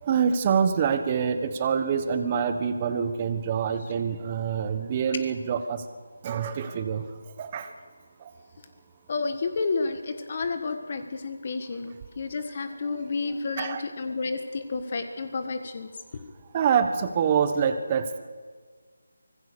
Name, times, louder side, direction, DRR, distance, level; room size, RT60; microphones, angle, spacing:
voice 1, 0.0-5.8 6.2-7.0 7.4-7.7 13.6-13.8 16.5-18.2, right 7 dB, 20° right, 9 dB, 1.3 m, -26 dB
voice 2, 9.1-15.9, left 4 dB, 35° left, 8 dB, 1.6 m, -31 dB
25.0 x 20.5 x 6.9 m, 1.5 s
figure-of-eight pair, 175°, 0 cm